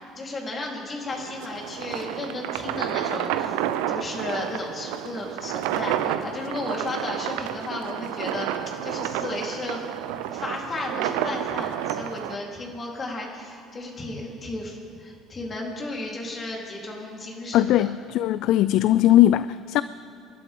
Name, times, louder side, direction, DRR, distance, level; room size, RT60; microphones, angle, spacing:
voice 1, 0.1-8.5 8.8-10.0 10.3-17.9, left 2 dB, 35° left, -1 dB, 3.9 m, -34 dB
sound 1, 1.1-12.4, right 11 dB, 70° right, 0.8 m, -30 dB
voice 2, 17.5-19.8, left 13 dB, 60° left, 16 dB, 0.3 m, -19 dB
29.5 x 12.0 x 3.8 m, 2.8 s
hypercardioid pair, 60°, 0 cm